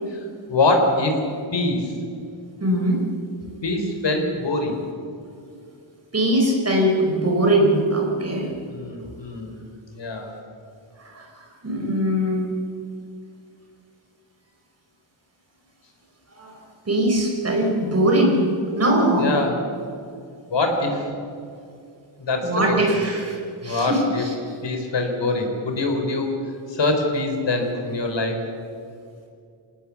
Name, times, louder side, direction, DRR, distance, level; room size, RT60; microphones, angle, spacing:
voice 1, 0.5-1.1 1.5-1.9 3.6-4.8 8.7-9.6 9.9-10.3 19.2-19.6 20.5-21.1 22.2-23.0 23.6-24.2 24.6-26.3 26.7-28.4, left 2 dB, 60° left, 4 dB, 4.1 m, -24 dB
voice 2, 2.6-3.0 6.1-8.5 11.0-12.5 16.3-16.6 16.9-18.4 18.8-19.3 22.4-24.3, right 1 dB, 30° right, 0 dB, 5.3 m, -21 dB
27.0 x 19.0 x 7.2 m, 2.4 s
wide cardioid pair, 175°, 48 cm